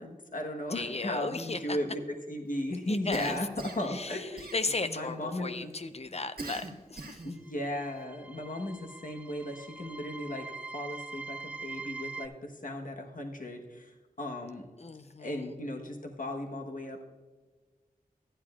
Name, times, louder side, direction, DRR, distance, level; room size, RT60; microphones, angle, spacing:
voice 1, 0.0-3.5 3.8-4.4 4.8-5.7 7.2-10.5 10.7-14.7 15.2-17.0, left 1 dB, 60° left, 2 dB, 1.2 m, -36 dB
voice 2, 0.7-1.8 2.9-3.4 3.8-7.2 14.8-15.5, left 3 dB, 45° left, 11 dB, 0.7 m, -36 dB
Cough, 3.1-3.9 4.4-5.0 6.4-7.4, right 2 dB, 80° right, 1.6 m, -41 dB
sound 1, 7.4-12.3, right 4 dB, 10° right, 0.6 m, -43 dB
14.5 x 10.0 x 2.4 m, 1.4 s
wide cardioid pair, 45°, 15 cm